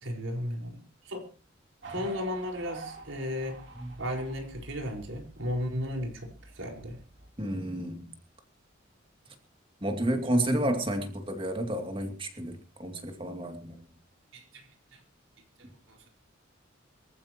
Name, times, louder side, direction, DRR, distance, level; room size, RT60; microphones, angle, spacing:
voice 1, 0.0-1.3 1.9-3.6 4.0-7.0 14.3-15.0 15.6-16.1, equal, 85° right, 4.7 m, -35 dB
sound 1, 1.8-7.3, right 3 dB, 65° right, 3.5 m, -48 dB
voice 2, 7.4-8.0 9.8-13.8, right 1 dB, 25° right, 2.5 m, -30 dB
24.5 x 14.5 x 3.0 m
head